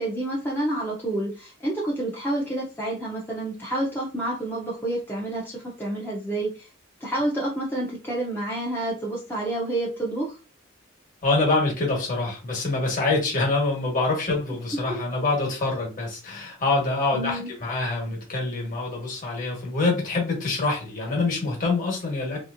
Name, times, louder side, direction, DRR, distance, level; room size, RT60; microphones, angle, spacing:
voice 1, 0.0-6.7 7.0-10.4 14.9-15.0 17.1-17.5, right 1 dB, 10° left, -4 dB, 0.6 m, -29 dB
voice 2, 11.2-22.4, left 3 dB, 40° left, -1 dB, 1.3 m, -25 dB
3.1 x 2.9 x 2.5 m, 0.33 s
head